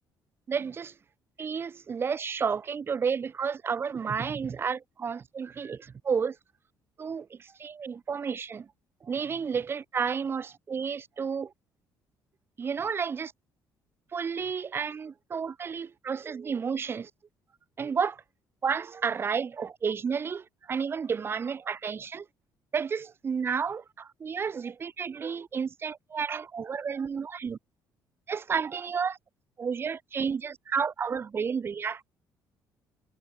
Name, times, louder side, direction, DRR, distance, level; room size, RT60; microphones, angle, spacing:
voice 1, 0.5-0.9 1.4-6.4 7.0-8.7 9.0-11.5 12.6-13.3 14.1-17.1 17.8-18.2 18.6-22.2 22.7-27.6 28.3-29.2 29.6-32.0, right 6 dB, 30° right, 4.9 m, -31 dB
cardioid pair, 135°, 7 cm